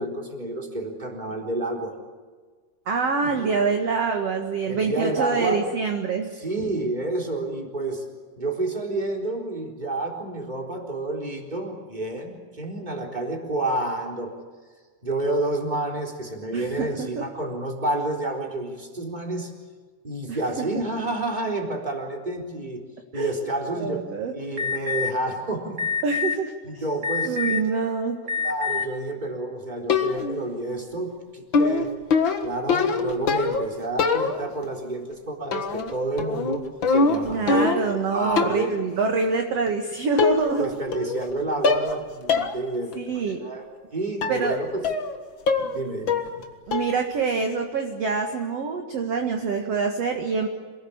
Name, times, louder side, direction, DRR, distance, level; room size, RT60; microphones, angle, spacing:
voice 1, 0.0-1.9 3.2-3.6 4.7-5.6 6.3-8.0 8.4-14.3 15.0-19.5 20.0-22.8 23.1-24.1 24.3-25.8 26.6-27.4 28.4-31.9 32.4-36.6 36.9-38.7 40.6-43.6 43.9-44.9 45.6-46.4, right 2 dB, 10° right, 1 dB, 3.7 m, -29 dB
voice 2, 2.9-6.3 16.5-17.2 20.3-20.7 23.1-23.3 23.7-24.3 26.0-26.5 27.2-28.2 37.2-40.7 43.0-43.4 44.3-44.6 46.7-50.5, right 4 dB, 50° right, 3 dB, 2.1 m, -25 dB
Alarm, 24.6-25.1 25.8-26.3 27.0-27.7 28.2-28.8, left 6 dB, 35° right, 1.2 m, -26 dB
sound 1, 29.9-30.4 31.5-33.7 34.0-34.6 35.5-35.9 36.2-38.0 38.4-38.7 39.7-39.8 40.2-40.6 40.9-41.3 41.6-42.0 42.3-42.5 42.9-43.0 44.2-44.4 44.8-45.1 45.5-45.8 46.1-46.4 46.7-47.0, left 4 dB, 60° left, 1.2 m, -23 dB
27.5 x 20.0 x 8.7 m, 1.5 s
omnidirectional pair, 4.8 m